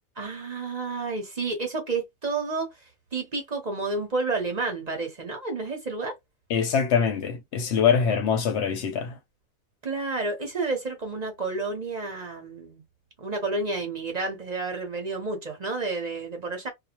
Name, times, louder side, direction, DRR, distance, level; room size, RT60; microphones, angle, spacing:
voice 1, 0.2-2.7 3.1-6.1 9.8-12.8 13.2-16.7, right 3 dB, 40° right, 0.7 m, -30 dB
voice 2, 6.5-9.2, left 7 dB, 65° left, 0.8 m, -24 dB
2.4 x 2.0 x 2.8 m
omnidirectional pair, 1.4 m